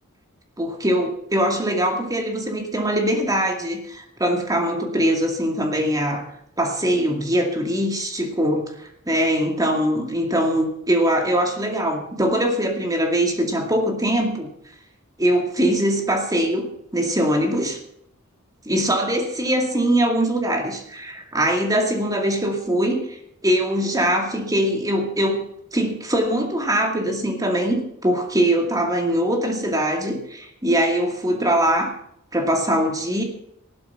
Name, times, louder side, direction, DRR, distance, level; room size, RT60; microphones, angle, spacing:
voice 1, 0.6-6.3 6.6-14.5 15.2-17.8 18.7-23.2 23.4-31.9 32.3-33.2, right 1 dB, 15° right, 3 dB, 2.3 m, -22 dB
15.5 x 12.0 x 5.8 m, 0.74 s
head